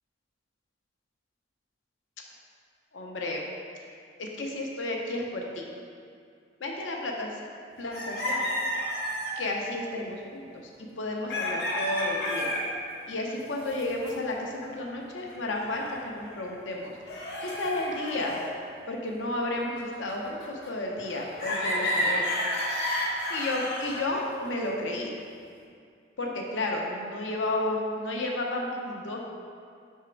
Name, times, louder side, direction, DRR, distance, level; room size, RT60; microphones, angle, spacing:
voice 1, 2.9-3.4 4.2-5.7 6.6-7.4 7.8-8.5 9.4-12.7 13.1-18.4 18.9-22.3 23.3-25.1 26.2-29.2, left 2 dB, 90° left, 0 dB, 0.8 m, -32 dB
sound 1, 7.9-9.4 11.3-12.7 13.3-14.1 14.6-14.8 15.3-16.5 17.1-18.5 19.3-20.7 21.0-24.3, equal, 55° left, 0.9 m, -31 dB
5.9 x 3.6 x 4.5 m, 2.3 s
head